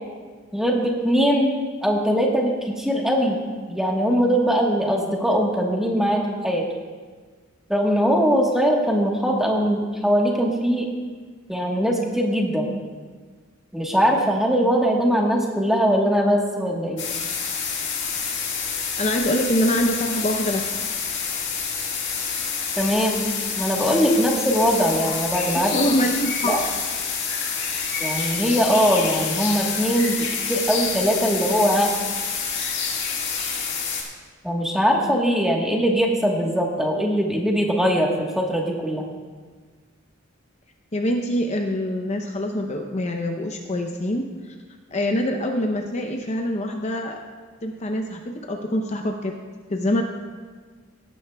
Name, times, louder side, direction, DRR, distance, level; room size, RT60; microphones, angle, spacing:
voice 1, 0.5-1.5 1.8-3.4 3.7-6.7 7.7-10.9 11.5-12.7 13.7-17.1 22.8-23.2 23.5-25.7 26.4-26.6 28.0-30.2 30.5-31.9 34.4-38.1 38.3-39.0, equal, ahead, -1 dB, 1.2 m, -21 dB
sound 1, 17.0-34.0, left 6 dB, 65° left, 1.8 m, -28 dB
voice 2, 19.0-20.9 25.5-26.5 40.9-44.2 44.9-47.2 47.6-49.3 49.7-50.0, left 1 dB, 35° left, 3 dB, 0.6 m, -24 dB
17.5 x 9.2 x 2.3 m, 1.5 s
head